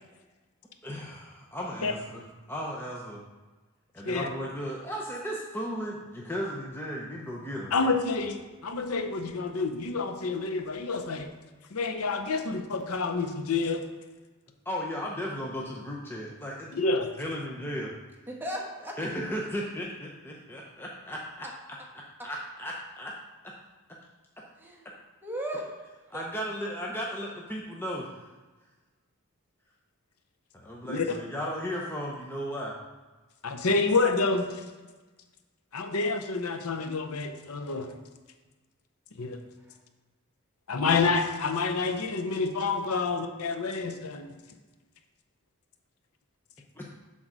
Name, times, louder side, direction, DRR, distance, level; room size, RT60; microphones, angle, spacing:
voice 1, 0.8-2.2 2.5-3.2 3.9-7.7 14.7-16.8 17.2-17.9 19.0-21.3 22.2-23.1 23.4-23.5 26.1-28.2 30.5-32.7 46.8-46.9, equal, 10° left, -3 dB, 0.7 m, -35 dB
voice 2, 7.7-11.3 11.7-13.9 16.7-17.1 30.9-31.2 33.4-34.6 35.7-38.0 39.2-39.4 40.7-44.3, left 4 dB, 75° left, 6 dB, 0.7 m, -28 dB
voice 3, 18.3-19.0 21.4-21.5 22.2-22.3 24.6-24.8 25.2-25.8 26.1-26.2 39.7-39.8, right 1 dB, 10° right, -2 dB, 1.3 m, -36 dB
7.9 x 3.8 x 6.1 m, 1.3 s
head